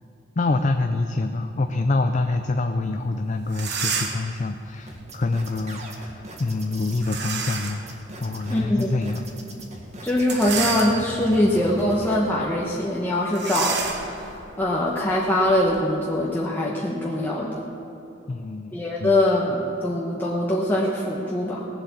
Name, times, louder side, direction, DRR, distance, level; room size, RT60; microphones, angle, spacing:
voice 1, 0.4-7.8 8.2-9.2 18.3-18.7 19.0-19.1, left 2 dB, 40° left, 6 dB, 0.5 m, -26 dB
sound 1, 3.1-3.2 3.5-4.3 7.0-7.9 8.4-8.5 10.2-11.3 11.9-12.1 12.3-12.5 13.3-15.8, right 5 dB, 60° right, 1.4 m, -30 dB
sound 2, 4.9-12.2, right 1 dB, 35° right, 1.7 m, -40 dB
voice 2, 8.5-9.0 10.0-17.7 18.7-21.7, left 1 dB, 10° left, -5 dB, 1.1 m, -23 dB
18.5 x 7.6 x 7.2 m, 2.7 s
head